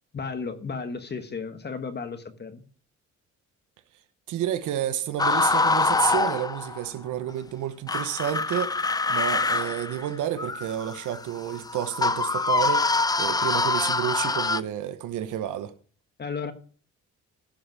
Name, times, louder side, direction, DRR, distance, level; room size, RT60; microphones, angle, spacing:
voice 1, 0.1-2.6 16.2-16.5, left 5 dB, 35° left, 1.3 m, -34 dB
voice 2, 4.3-15.7, right 11 dB, 80° right, 1.0 m, -30 dB
sound 1, 5.2-6.9 7.9-14.6, left 3 dB, 15° left, 0.4 m, -25 dB
15.5 x 5.3 x 6.1 m
cardioid pair, 90°, 30 cm